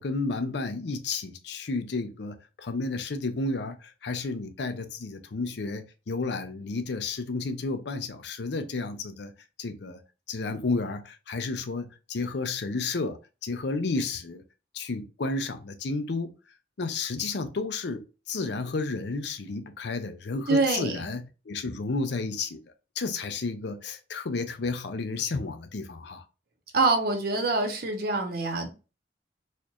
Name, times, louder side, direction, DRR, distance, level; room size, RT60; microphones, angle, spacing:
voice 1, 0.0-9.3 9.6-10.0 10.3-14.4 14.7-16.3 16.8-22.6 23.0-26.2, left 3 dB, 65° left, 0.6 m, -32 dB
voice 2, 20.5-21.0 26.7-28.7, right 3 dB, 60° right, 0.9 m, -25 dB
4.2 x 2.5 x 2.9 m
head